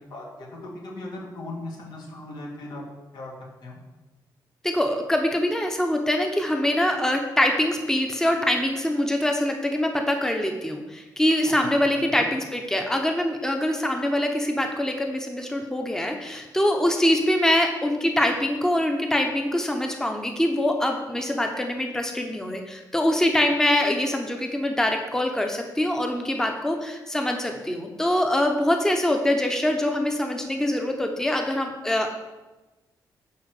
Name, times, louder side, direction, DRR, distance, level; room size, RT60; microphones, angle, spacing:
voice 1, 0.1-2.8 3.1-3.3 3.6-3.8 11.6-11.7 12.1-12.2, left 2 dB, 80° left, -2 dB, 2.5 m, -38 dB
voice 2, 4.6-32.1, left 1 dB, 5° left, 3 dB, 0.9 m, -24 dB
9.6 x 4.3 x 6.5 m, 1.1 s
cardioid pair, 120°, 8 cm